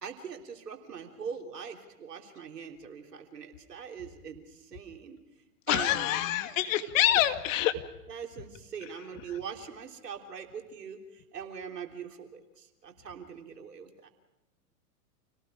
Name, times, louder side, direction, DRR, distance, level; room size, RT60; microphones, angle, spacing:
voice 1, 0.0-5.2 5.7-6.1 7.1-7.4 8.1-14.1, right 7 dB, 90° right, 3 dB, 3.6 m, -42 dB
voice 2, 5.7-7.7, left 13 dB, 55° left, 8 dB, 2.1 m, -26 dB
29.0 x 19.0 x 5.0 m, 1.0 s
hypercardioid pair, 120°, 47 cm